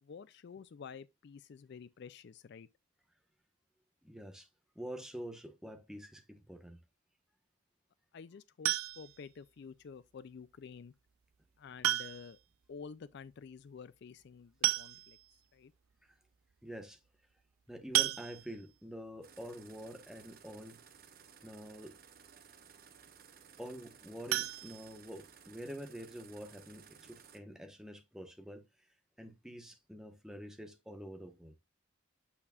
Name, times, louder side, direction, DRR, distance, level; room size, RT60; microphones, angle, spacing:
voice 1, 0.0-2.7 8.1-10.9 11.6-12.4 12.7-15.2 15.5-15.7, left 6 dB, 50° left, 0.3 m, -50 dB
voice 2, 4.0-4.5 4.7-6.8 16.6-17.0 17.7-20.8 21.4-22.0 23.6-28.6 29.2-31.5, equal, 5° right, 1.1 m, -47 dB
sound 1, 8.6-9.3 10.8-10.9 11.8-12.4 12.7-12.8 13.1-13.2 14.2-14.3 14.6-15.3 15.9-16.0 16.3-16.5 17.9-18.8 24.3-25.5 25.8-25.9 26.4-26.5 26.8-26.9, right 14 dB, 85° right, 0.5 m, -33 dB
sound 2, 19.2-27.4, right 7 dB, 45° right, 1.0 m, -58 dB
8.4 x 6.7 x 2.4 m
head